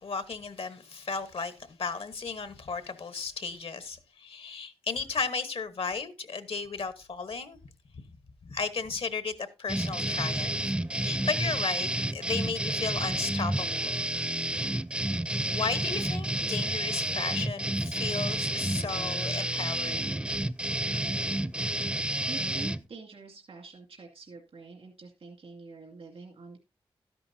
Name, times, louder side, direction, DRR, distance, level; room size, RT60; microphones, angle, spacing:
voice 1, 0.0-7.6 8.4-14.1 15.5-20.4, left 5 dB, 75° left, 1.2 m, -35 dB
sound 1, 9.7-22.8, right 1 dB, 10° right, 0.4 m, -30 dB
voice 2, 22.3-26.6, right 4 dB, 80° right, 2.2 m, -46 dB
12.5 x 10.5 x 2.7 m
cardioid pair, 65°, 10 cm